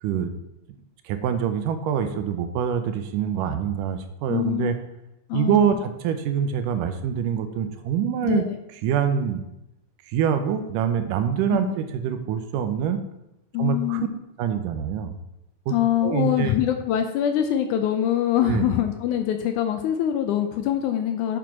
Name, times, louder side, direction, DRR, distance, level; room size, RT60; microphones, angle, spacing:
voice 1, 0.0-0.4 1.0-4.7 5.3-8.4 8.8-9.4 10.1-13.0 13.6-14.1 14.4-15.2 15.7-15.8 16.0-16.6 18.5-18.7, right 8 dB, 80° right, 8 dB, 2.1 m, -25 dB
voice 2, 4.3-4.7 5.3-5.8 8.2-8.6 11.5-11.8 13.5-14.1 15.7-21.4, left 10 dB, 80° left, 6 dB, 1.9 m, -24 dB
7.1 x 6.1 x 5.8 m, 0.89 s
omnidirectional pair, 4.0 m